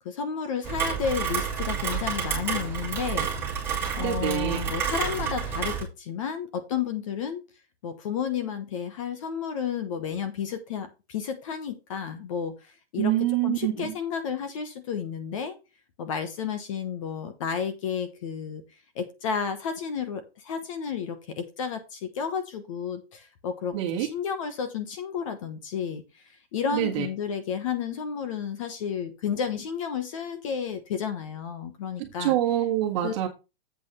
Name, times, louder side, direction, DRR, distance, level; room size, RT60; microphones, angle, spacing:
voice 1, 0.0-3.3 4.0-7.4 7.8-12.5 12.9-13.1 13.4-15.6 16.0-18.6 18.9-26.0 26.5-32.4 33.0-33.1, left 7 dB, 30° left, 1.0 m, -31 dB
Rain, 0.6-5.8, right 6 dB, 5° right, 2.6 m, -29 dB
voice 2, 3.9-4.6 13.0-13.9 23.7-24.1 26.7-27.1 32.0-33.3, right 13 dB, 30° right, 1.7 m, -26 dB
8.1 x 4.8 x 5.5 m
hypercardioid pair, 175°, 31 cm